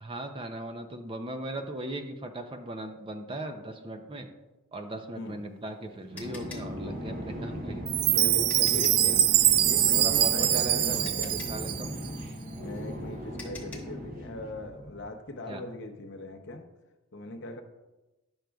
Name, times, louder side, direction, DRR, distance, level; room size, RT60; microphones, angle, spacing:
voice 1, 0.0-4.3 4.7-7.8 8.2-9.2 9.9-11.0 11.3-12.0 15.5-15.6, right 1 dB, 25° right, 5 dB, 0.4 m, -38 dB
voice 2, 5.1-5.4 8.0-11.4 12.6-16.7 17.1-17.6, left 1 dB, 55° left, 4 dB, 0.7 m, -40 dB
sound 1, 5.2-9.1 10.5-10.6 11.0-14.0, left 4 dB, 10° left, 1.2 m, -47 dB
sound 2, 6.1-15.0, equal, 40° right, 0.9 m, -38 dB
Chime, 7.9-12.1, right 12 dB, 85° right, 0.3 m, -24 dB
10.5 x 6.2 x 2.3 m, 1.1 s
head